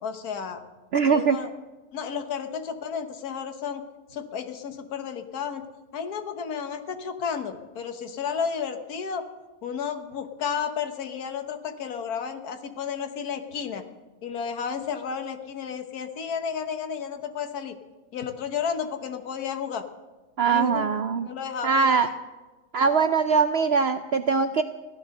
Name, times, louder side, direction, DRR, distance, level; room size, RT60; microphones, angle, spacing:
voice 1, 0.0-0.6 1.0-1.5 1.9-3.8 4.1-5.6 5.9-9.2 9.6-13.8 14.2-17.8 18.1-19.8 20.5-20.8 21.2-22.1 22.8-23.2, left 7 dB, 75° left, 7 dB, 1.6 m, -32 dB
voice 2, 0.9-1.4 20.4-21.3 21.6-22.1 22.7-24.6, right 5 dB, 70° right, 9 dB, 0.6 m, -22 dB
15.5 x 11.5 x 6.5 m, 1.2 s
omnidirectional pair, 1.6 m